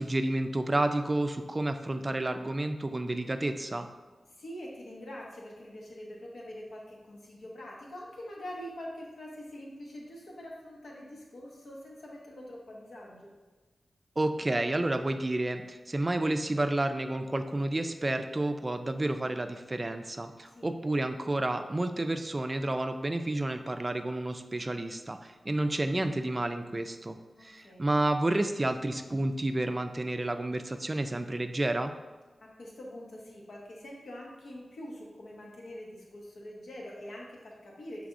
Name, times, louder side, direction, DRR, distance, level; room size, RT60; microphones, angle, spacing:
voice 1, 0.0-3.9 14.2-31.9, right 2 dB, 35° right, 8 dB, 0.4 m, -30 dB
voice 2, 4.4-13.3 20.5-20.8 27.4-27.9 32.6-38.1, equal, 80° left, -3 dB, 0.9 m, -44 dB
6.0 x 3.3 x 2.5 m, 1.3 s
cardioid pair, 50°, 0 cm